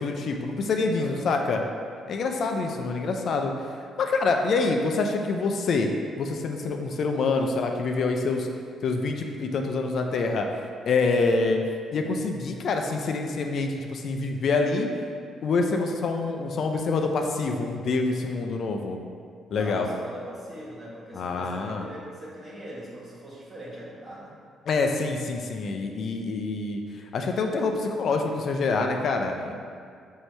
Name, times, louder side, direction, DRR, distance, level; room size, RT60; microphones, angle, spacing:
voice 1, 0.0-1.6 2.1-3.5 4.0-5.9 6.2-8.5 8.8-10.5 10.8-11.6 11.9-14.9 15.4-19.0 19.5-19.9 21.1-21.9 24.7-26.8 27.1-29.5, left 3 dB, 60° left, 3 dB, 0.3 m, -26 dB
voice 2, 0.8-1.2 1.4-1.7 19.5-24.4, right 1 dB, 40° right, -7 dB, 1.3 m, -41 dB
4.4 x 2.7 x 3.2 m, 2.2 s
cardioid pair, 90°, 0 cm